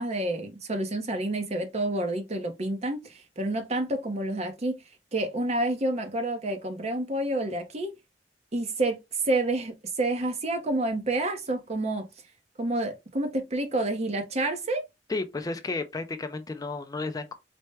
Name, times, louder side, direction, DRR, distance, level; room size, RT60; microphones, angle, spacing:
voice 1, 0.0-4.8 5.1-7.9 8.5-12.1 12.6-14.8, right 2 dB, 40° right, 0.7 m, -29 dB
voice 2, 15.1-17.3, left 3 dB, 20° left, 0.4 m, -32 dB
4.3 x 2.1 x 3.3 m
head